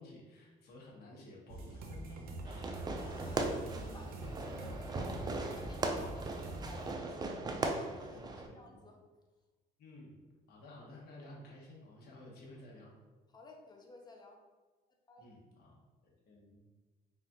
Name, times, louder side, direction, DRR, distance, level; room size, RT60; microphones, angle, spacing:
voice 1, 0.0-2.8 8.1-8.9 9.8-10.2 10.5-12.9 15.2-15.8 16.3-16.6, left 1 dB, 65° left, -3 dB, 1.3 m, -54 dB
sound 1, 1.5-6.9, right 2 dB, 60° right, 0.7 m, -45 dB
Fireworks, 2.4-8.5, right 2 dB, 25° right, 0.4 m, -38 dB
voice 2, 2.6-7.3 7.8-9.0 13.3-14.4 15.1-15.3, left 2 dB, 25° left, 1 dB, 0.8 m, -55 dB
3.9 x 3.7 x 2.9 m, 1.2 s
cardioid pair, 110°, 17 cm